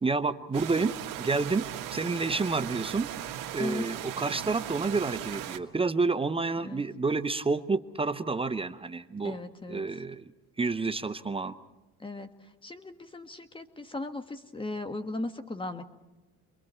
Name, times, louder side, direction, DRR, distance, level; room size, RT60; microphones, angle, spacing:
voice 1, 0.0-1.7 1.9-9.4 9.7-10.3 10.6-11.6, right 4 dB, 15° right, 10 dB, 0.7 m, -29 dB
sound 1, 0.5-5.6, right 11 dB, 60° right, 1.7 m, -38 dB
voice 2, 9.2-9.8 12.0-12.3 12.6-15.8, left 2 dB, 15° left, 8 dB, 1.5 m, -37 dB
29.0 x 22.5 x 4.4 m, 1.1 s
cardioid pair, 110°, 37 cm